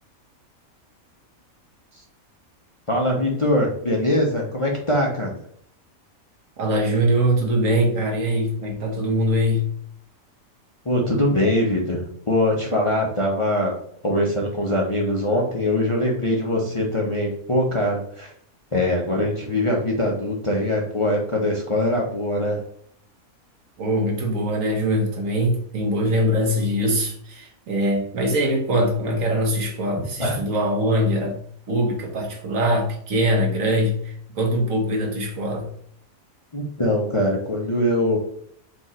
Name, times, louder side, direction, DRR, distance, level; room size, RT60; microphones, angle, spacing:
voice 1, 2.9-5.4 10.8-13.7 14.0-18.3 18.7-22.6 30.2-30.4 36.5-38.2, left 1 dB, 30° left, -1 dB, 0.7 m, -22 dB
voice 2, 6.6-9.7 23.8-31.4 31.7-35.7, equal, 70° right, 1 dB, 1.4 m, -22 dB
4.6 x 2.6 x 4.3 m, 0.65 s
omnidirectional pair, 1.5 m